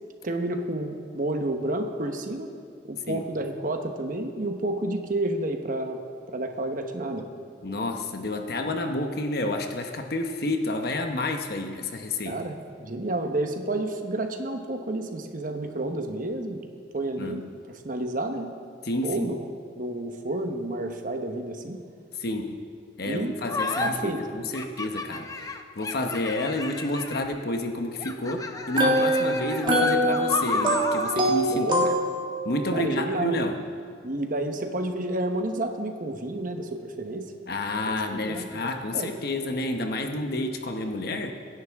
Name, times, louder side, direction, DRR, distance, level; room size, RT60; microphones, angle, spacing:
voice 1, 0.2-2.5 2.9-6.0 6.3-7.3 12.2-16.6 16.9-18.5 19.0-19.5 19.8-21.8 23.0-23.3 23.8-24.2 31.5-31.8 32.7-33.3 34.0-37.3 37.9-38.5 38.9-39.1, right 1 dB, 50° right, 5 dB, 1.1 m, -30 dB
voice 2, 7.6-12.4 17.2-17.5 18.8-19.4 22.2-22.6 23.0-31.7 32.4-33.6 37.5-41.3, left 2 dB, 55° left, 5 dB, 1.0 m, -29 dB
sound 1, 23.5-23.9 24.5-27.4 28.0-31.2, left 3 dB, 20° left, 0.7 m, -32 dB
sound 2, 28.5-32.5, right 1 dB, 25° right, 2.0 m, -24 dB
23.0 x 10.5 x 3.6 m, 2.2 s
head